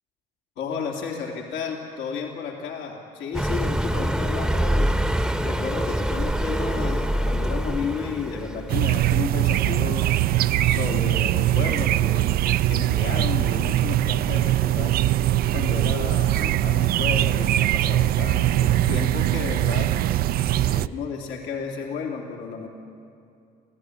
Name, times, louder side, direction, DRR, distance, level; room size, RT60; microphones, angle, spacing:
voice 1, 0.6-4.9 5.4-10.1 10.6-12.4 12.7-15.0 15.5-19.9 20.6-22.7, left 6 dB, 80° left, 0 dB, 3.1 m, -32 dB
Car passing by, 3.3-8.9, right 1 dB, 5° right, 0.9 m, -25 dB
sound 1, 8.7-20.9, right 13 dB, 65° right, 0.5 m, -22 dB
26.5 x 16.5 x 9.9 m, 2.5 s
cardioid pair, 110°, 17 cm